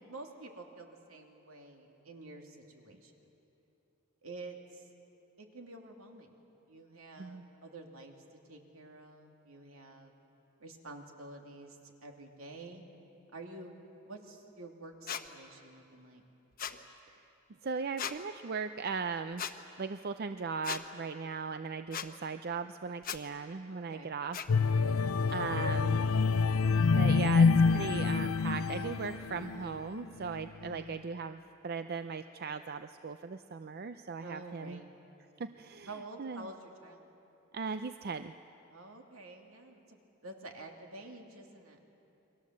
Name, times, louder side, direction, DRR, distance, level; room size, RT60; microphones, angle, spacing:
voice 1, 0.1-3.1 4.2-4.9 5.4-6.4 6.7-10.1 10.6-12.8 13.3-16.2 23.7-24.1 30.6-31.0 34.2-34.9 35.8-37.0 38.7-41.8, right 2 dB, 75° right, 2 dB, 2.7 m, -49 dB
voice 2, 7.2-7.5 17.6-19.5 19.8-24.4 24.8-26.1 27.0-34.8 35.4-35.9 36.2-36.5 37.5-38.3, right 5 dB, 45° right, 10 dB, 0.5 m, -38 dB
sound 1, 15.1-15.2 16.6-16.8 18.0-18.2 19.4-19.5 20.6-20.8 21.9-22.1 23.0-23.2 24.3-24.5, left 8 dB, 40° left, 1.0 m, -37 dB
sound 2, 24.5-29.7 30.2-30.4, left 4 dB, 85° left, 0.5 m, -27 dB
29.0 x 22.5 x 7.5 m, 2.9 s
head